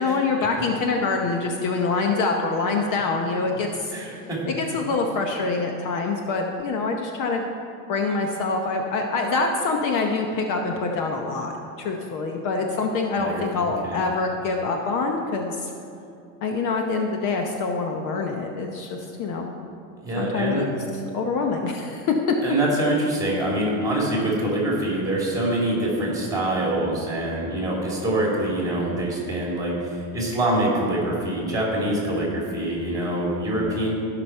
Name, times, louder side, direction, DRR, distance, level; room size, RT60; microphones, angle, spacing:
voice 1, 0.0-3.9 4.5-7.4 7.9-15.7 16.4-19.5 20.2-20.7 21.1-22.1, left 4 dB, 50° left, 2 dB, 0.9 m, -25 dB
voice 2, 3.9-4.4 13.2-14.0 20.0-20.6 22.4-33.9, right 1 dB, 10° right, -3 dB, 2.7 m, -25 dB
15.0 x 6.0 x 4.5 m, 2.6 s
cardioid pair, 145°, 41 cm